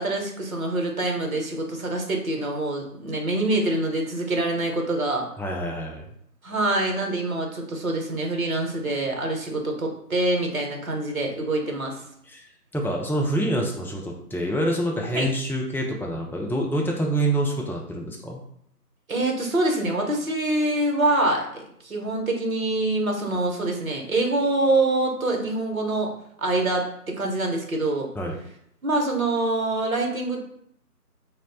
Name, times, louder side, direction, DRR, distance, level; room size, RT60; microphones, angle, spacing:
voice 1, 0.0-5.3 6.4-12.0 15.1-15.3 19.1-26.1 26.4-28.1 28.8-30.4, right 2 dB, 60° right, 1 dB, 0.8 m, -25 dB
voice 2, 5.4-6.1 12.3-12.5 12.7-18.4 28.1-28.4, right 1 dB, 5° left, -1 dB, 0.3 m, -26 dB
3.0 x 2.1 x 4.0 m, 0.70 s
figure-of-eight pair, 170°, 48 cm